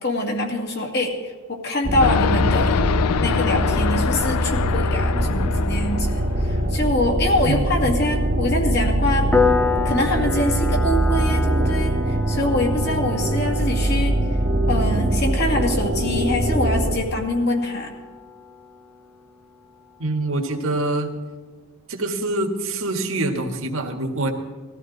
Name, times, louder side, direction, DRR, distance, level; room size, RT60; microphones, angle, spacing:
voice 1, 0.0-2.8 3.2-9.3 9.8-14.2 14.7-17.9, left 1 dB, 45° left, 1 dB, 2.2 m, -24 dB
sound 1, 1.8-17.0, right 1 dB, 45° right, 1.3 m, -22 dB
sound 2, 2.0-6.7, left 7 dB, 90° left, 0.4 m, -26 dB
voice 2, 7.4-7.9 20.0-21.1 21.9-24.3, right 2 dB, 65° right, 3 dB, 1.8 m, -25 dB
Piano, 9.3-19.7, left 5 dB, 10° left, 0.6 m, -29 dB
19.5 x 13.5 x 4.1 m, 1.5 s
head